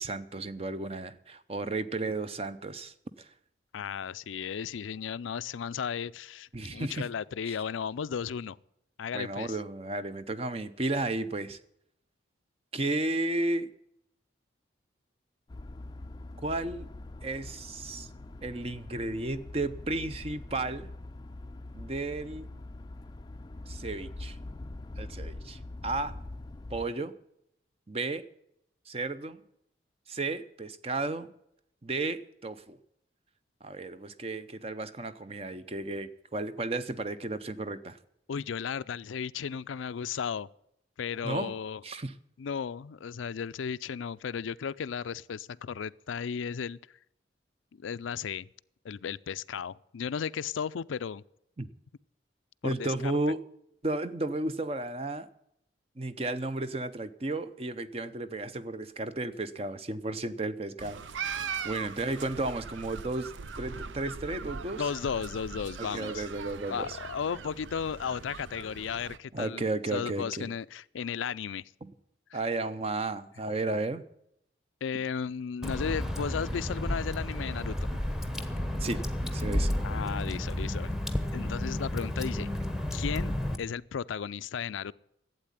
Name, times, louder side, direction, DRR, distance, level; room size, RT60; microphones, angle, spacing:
voice 1, 0.0-3.3 6.5-7.1 7.5-7.6 9.1-11.6 12.7-13.7 16.4-16.9 17.2-18.1 18.4-20.9 21.7-22.5 23.7-24.4 25.0-26.1 26.7-27.1 27.9-28.2 28.9-29.4 30.1-31.3 31.8-32.8 33.6-38.0 41.2-41.5 41.8-42.1 51.6-51.7 52.6-53.4 53.8-55.3 56.0-63.3 63.6-64.8 65.8-67.0 69.3-70.5 71.8-71.9 72.3-74.0 78.8-79.0 79.3-79.7, right 2 dB, 30° right, 0.7 m, -33 dB
voice 2, 3.7-8.6 9.0-9.6 38.3-40.5 41.0-41.8 42.4-46.8 47.7-48.5 48.8-51.2 52.6-53.1 64.8-66.3 66.7-69.6 69.9-71.7 72.3-72.4 74.8-77.7 79.8-80.9 81.3-82.5 82.9-84.9, left 7 dB, 90° left, 0.4 m, -35 dB
sound 1, 15.5-26.9, left 2 dB, 20° left, 0.4 m, -43 dB
sound 2, 60.8-69.2, right 6 dB, 85° right, 0.6 m, -40 dB
Water / Drip, 75.6-83.6, left 1 dB, ahead, 1.0 m, -32 dB
12.0 x 8.3 x 10.0 m
head